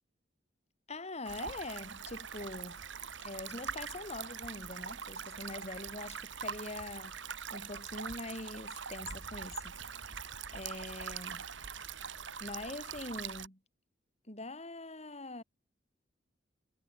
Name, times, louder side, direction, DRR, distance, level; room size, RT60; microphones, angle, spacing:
voice 1, 0.9-2.8 3.2-7.2 7.5-9.7 10.5-11.4 12.4-13.6 14.3-15.4, left 2 dB, 35° left, 6.9 m, -43 dB
sound 1, 1.2-13.5, right 6 dB, 75° right, 2.3 m, -43 dB
head